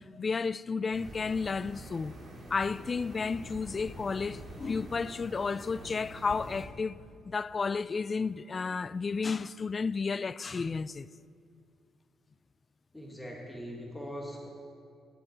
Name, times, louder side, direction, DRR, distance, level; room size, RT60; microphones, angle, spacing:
voice 1, 0.0-2.1 2.5-7.0 7.3-11.1, left 4 dB, 35° left, 0.3 m, -32 dB
sound 1, 0.9-6.7, right 1 dB, 35° right, 3.1 m, -46 dB
voice 2, 12.9-14.5, equal, 5° left, 1.8 m, -41 dB
16.0 x 9.9 x 4.6 m
cardioid pair, 90°, 0 cm